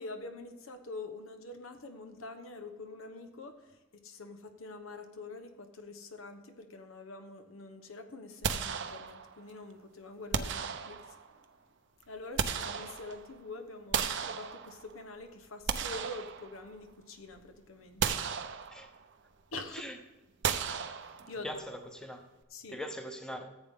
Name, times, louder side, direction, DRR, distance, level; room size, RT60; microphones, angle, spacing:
voice 1, 0.0-11.4 12.1-18.2 19.5-19.9 21.0-21.6 22.5-22.8 23.3-23.4, left 2 dB, 75° left, 7 dB, 1.1 m, -45 dB
sound 1, 8.4-9.5 10.3-11.4 12.0-13.4 13.9-15.0 15.5-16.9 17.3-17.5 18.0-19.1 20.4-21.6, right 6 dB, 60° right, 0.7 m, -35 dB
voice 2, 21.4-22.2 22.7-23.5, equal, 5° left, 5 dB, 0.9 m, -41 dB
14.5 x 8.1 x 3.7 m, 1.1 s
head